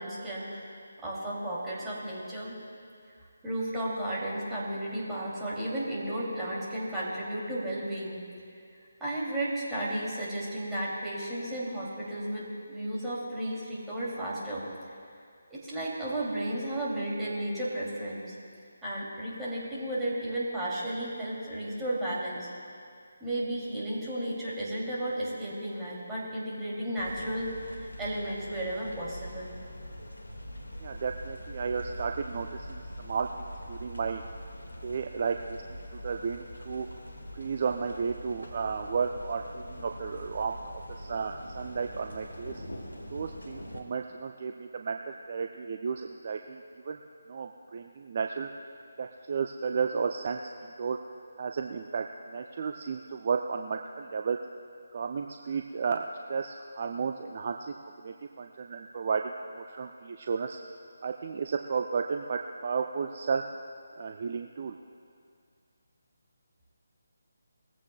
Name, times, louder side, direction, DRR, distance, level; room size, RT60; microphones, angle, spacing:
voice 1, 0.0-2.6 3.4-8.2 9.0-14.6 15.5-18.4 18.8-22.5 23.2-27.6 28.0-29.5, right 1 dB, 10° right, -7 dB, 2.7 m, -33 dB
sound 1, 27.0-43.8, equal, 80° left, 1.8 m, -43 dB
voice 2, 30.8-34.2 34.8-36.9 37.3-40.6 41.0-42.6 43.1-47.0 47.3-48.5 49.0-51.0 51.4-54.4 54.9-57.7 58.0-60.6 61.0-63.4 63.9-64.8, right 5 dB, 40° right, 4 dB, 0.5 m, -33 dB
20.5 x 15.0 x 2.3 m, 2.3 s
figure-of-eight pair, 150°, 0 cm